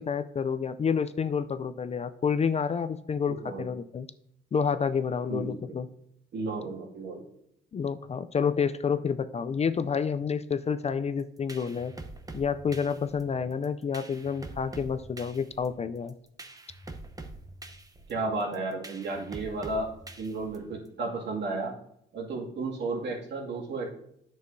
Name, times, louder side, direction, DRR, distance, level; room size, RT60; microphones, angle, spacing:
voice 1, 0.0-4.1 4.5-5.9 7.7-11.9 12.3-16.1, left 6 dB, 35° left, 12 dB, 0.4 m, -29 dB
voice 2, 3.3-3.7 5.3-5.5 6.3-7.2 18.1-19.9 20.2-21.7 22.1-23.9, right 3 dB, 60° right, -1 dB, 2.3 m, -33 dB
sound 1, 11.2-20.9, right 2 dB, 20° right, 0.8 m, -45 dB
9.6 x 6.4 x 2.7 m, 0.73 s
cardioid pair, 90°, 20 cm